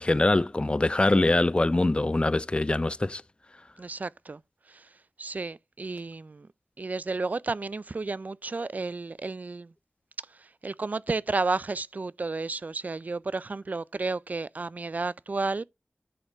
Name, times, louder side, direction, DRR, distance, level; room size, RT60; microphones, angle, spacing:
voice 1, 0.0-3.2, left 2 dB, 30° left, 0.4 m, -23 dB
voice 2, 3.8-4.4 4.7-4.9 5.2-6.5 6.8-9.7 10.3-15.6, right 3 dB, 50° right, 0.3 m, -32 dB
10.0 x 4.3 x 3.9 m
wide cardioid pair, 50°, 3 cm